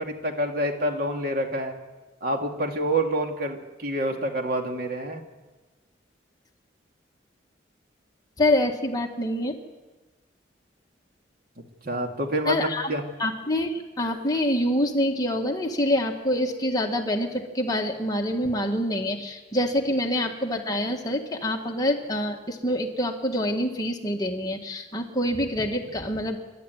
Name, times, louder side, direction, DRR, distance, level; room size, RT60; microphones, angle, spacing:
voice 1, 0.0-1.8 2.2-5.2 11.8-13.0, right 1 dB, 55° right, 3 dB, 2.4 m, -27 dB
voice 2, 8.4-9.6 12.5-12.9 13.2-26.4, left 1 dB, 20° left, 1 dB, 1.9 m, -26 dB
28.5 x 13.0 x 9.4 m, 1.3 s
head